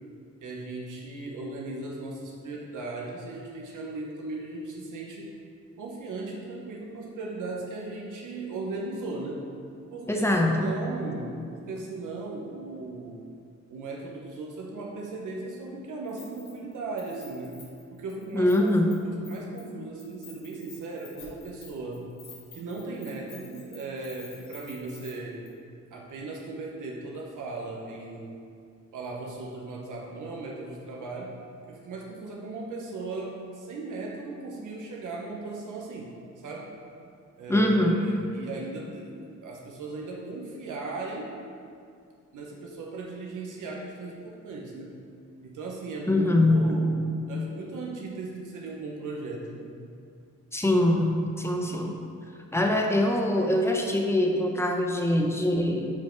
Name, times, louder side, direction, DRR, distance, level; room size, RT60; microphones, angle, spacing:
voice 1, 0.4-5.3 5.8-9.5 9.9-13.2 13.7-17.5 17.9-18.8 19.0-22.0 22.5-25.4 25.9-28.3 28.9-31.3 31.7-36.7 37.4-39.1 39.4-41.4 42.3-44.9 45.4-47.0 47.3-49.7, right 3 dB, 85° right, -2 dB, 0.9 m, -37 dB
voice 2, 10.1-10.7 18.3-19.0 37.5-38.0 46.1-46.8 50.5-51.9 52.5-55.9, left 1 dB, 10° left, 1 dB, 0.7 m, -23 dB
Keys jangling, 16.1-16.7 17.0-18.9 19.2-19.7 20.0-25.1 25.5-25.6, left 4 dB, 85° left, 1.6 m, -50 dB
5.7 x 5.0 x 4.5 m, 2.3 s
cardioid pair, 115°, 30 cm